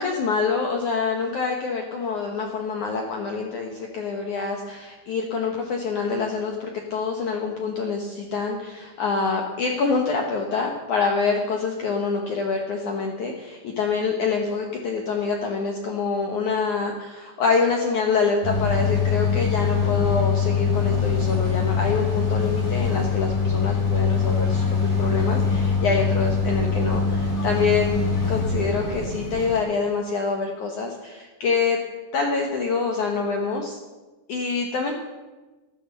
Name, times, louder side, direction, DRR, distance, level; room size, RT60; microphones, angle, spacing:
voice 1, 0.0-31.8 32.1-33.8 34.3-34.9, left 4 dB, 70° left, 1 dB, 1.8 m, -26 dB
sound 1, 18.4-29.6, left 5 dB, 15° left, 4.1 m, -23 dB
15.0 x 13.0 x 6.8 m, 1.2 s
omnidirectional pair, 5.5 m